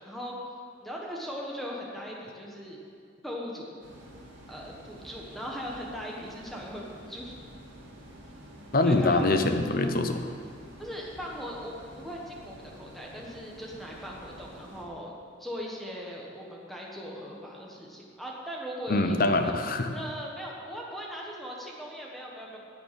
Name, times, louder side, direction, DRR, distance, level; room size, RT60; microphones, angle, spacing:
voice 1, 0.0-2.8 3.2-3.7 4.5-7.3 8.8-9.2 10.8-15.1 15.4-22.6, equal, ahead, -3 dB, 1.4 m, -39 dB
sound 1, 3.8-14.8, right 1 dB, 65° right, 2.6 m, -49 dB
voice 2, 8.7-10.3 18.9-19.9, left 2 dB, 50° left, 6 dB, 0.8 m, -24 dB
10.5 x 7.1 x 8.8 m, 2.2 s
head